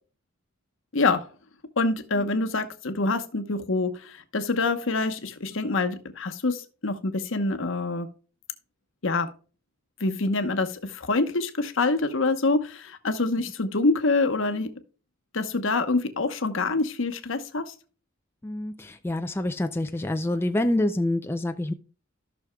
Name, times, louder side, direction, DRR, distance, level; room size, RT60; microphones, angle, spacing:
voice 1, 0.9-1.3 1.8-8.1 9.0-9.3 10.0-14.7 15.3-17.7, left 3 dB, 65° left, 1.0 m, -26 dB
voice 2, 2.2-2.5 18.4-21.7, left 1 dB, 10° left, 0.4 m, -27 dB
14.5 x 6.2 x 2.3 m
head